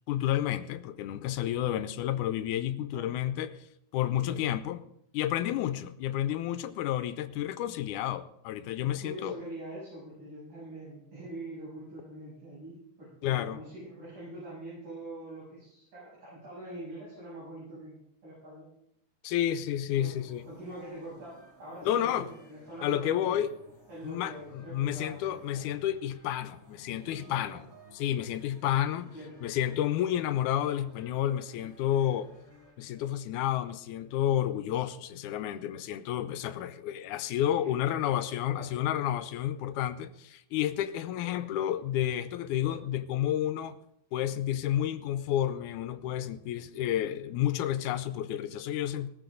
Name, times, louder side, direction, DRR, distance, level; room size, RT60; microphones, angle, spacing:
voice 1, 0.1-3.7 3.9-4.8 5.1-9.4 13.2-13.6 19.2-20.5 21.8-22.3 22.8-23.5 24.0-27.6 27.9-29.1 29.4-32.3 32.8-43.8 44.1-49.1, left 11 dB, 90° left, 2.2 m, -30 dB
voice 2, 4.1-4.5 7.6-7.7 8.8-18.7 19.9-20.1 20.5-23.5 23.9-25.6 27.1-27.7 29.0-29.4 37.6-37.9 38.4-38.7, right 1 dB, 65° right, 9.0 m, -44 dB
sound 1, 19.9-33.4, right 1 dB, 5° left, 2.5 m, -57 dB
19.0 x 15.0 x 3.9 m
omnidirectional pair, 3.5 m